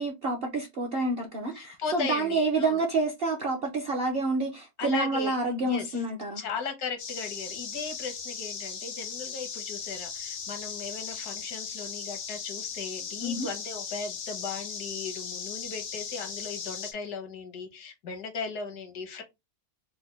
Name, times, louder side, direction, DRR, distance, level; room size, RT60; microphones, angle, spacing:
voice 1, 0.0-6.4 13.2-13.5, right 2 dB, 60° right, 0.6 m, -28 dB
voice 2, 1.5-2.8 4.8-5.4 5.6-6.0 6.4-19.2, left 5 dB, 80° left, 1.4 m, -37 dB
sound 1, 7.0-16.9, left 6 dB, 60° left, 0.5 m, -37 dB
4.1 x 2.2 x 3.2 m
omnidirectional pair, 1.7 m